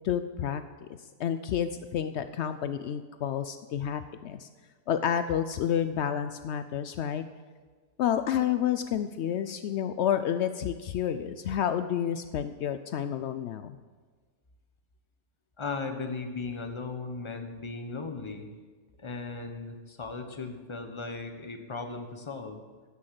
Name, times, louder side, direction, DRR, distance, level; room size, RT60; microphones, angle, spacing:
voice 1, 0.0-0.9 1.2-4.5 4.9-7.2 8.0-13.8, left 9 dB, 80° left, 10 dB, 0.6 m, -30 dB
voice 2, 15.6-18.5 19.0-22.6, left 4 dB, 20° left, 5 dB, 1.0 m, -37 dB
15.5 x 6.4 x 7.5 m, 1.5 s
omnidirectional pair, 1.7 m